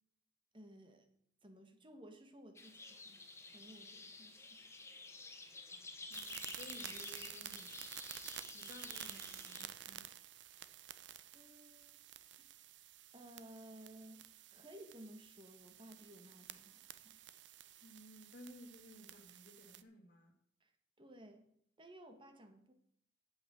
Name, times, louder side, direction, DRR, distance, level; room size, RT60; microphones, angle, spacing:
voice 1, 0.5-1.1 1.4-3.2 3.5-4.6 11.3-12.0 13.1-17.2 20.6-20.7 21.0-21.5 21.8-22.7, right 1 dB, 30° right, 1.5 m, -57 dB
sound 1, 2.5-9.7, left 3 dB, 15° left, 1.3 m, -51 dB
voice 2, 6.1-7.9 8.5-10.1 17.8-20.3, left 1 dB, 50° left, 2.1 m, -57 dB
sound 2, 6.1-19.8, right 12 dB, 75° right, 0.6 m, -52 dB
8.7 x 8.0 x 7.5 m
head